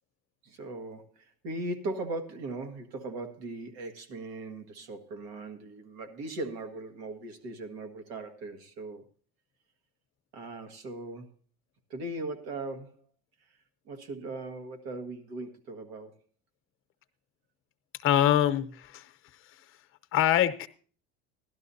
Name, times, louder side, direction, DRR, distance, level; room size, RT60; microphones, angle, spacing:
voice 1, 0.4-9.0 10.3-11.3 11.9-13.0 13.8-16.2, right 2 dB, 75° right, 1.7 m, -39 dB
voice 2, 18.0-19.1 20.1-20.7, left 11 dB, 45° left, 0.9 m, -24 dB
16.0 x 12.0 x 2.7 m
supercardioid pair, 120°, 30 cm